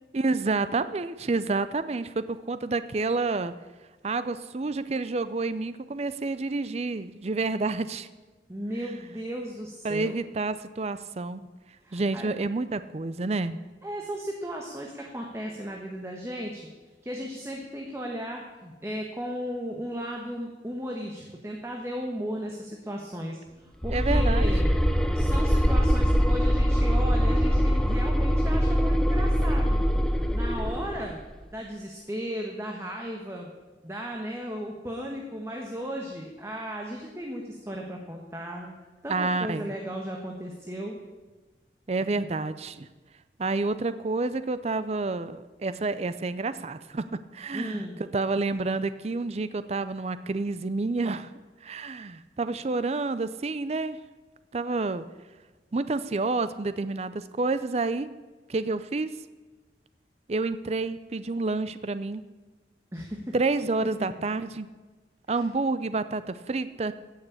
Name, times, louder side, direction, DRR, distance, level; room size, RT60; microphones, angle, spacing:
voice 1, 0.1-3.5 4.0-8.1 9.8-11.4 11.9-13.6 23.9-24.5 39.1-39.7 41.9-42.9 43.4-51.3 51.6-54.0 54.5-55.0 55.7-58.1 58.5-59.1 60.3-62.2 63.3-64.7 65.3-66.9, right 3 dB, 35° right, 13 dB, 0.5 m, -29 dB
voice 2, 8.5-10.2 11.8-12.3 13.8-16.6 17.0-24.7 25.1-29.8 30.3-31.2 31.5-33.5 33.8-38.7 39.0-41.0 47.5-48.0 62.9-63.3 65.3-65.4, equal, 15° right, 0 dB, 1.3 m, -35 dB
sound 1, 23.8-31.1, equal, 5° left, 0.6 m, -23 dB
16.0 x 6.5 x 8.3 m, 1.3 s
head